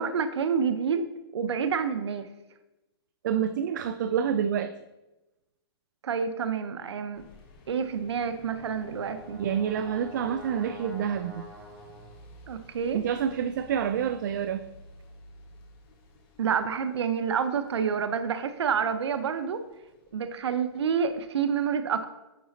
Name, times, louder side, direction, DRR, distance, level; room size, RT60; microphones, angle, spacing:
voice 1, 0.0-2.3 6.0-7.2 7.7-9.4 12.5-13.0 16.4-19.6 20.1-22.1, right 6 dB, 85° right, 9 dB, 0.6 m, -28 dB
voice 2, 3.2-4.7 9.4-11.5 12.9-14.7, right 8 dB, 45° right, 11 dB, 0.4 m, -28 dB
sound 1, 7.1-21.3, left 1 dB, 30° left, 1.4 m, -54 dB
Brass instrument, 8.1-12.3, equal, 25° right, 1.8 m, -46 dB
9.4 x 3.9 x 3.9 m, 1.0 s
hypercardioid pair, 160°, 14 cm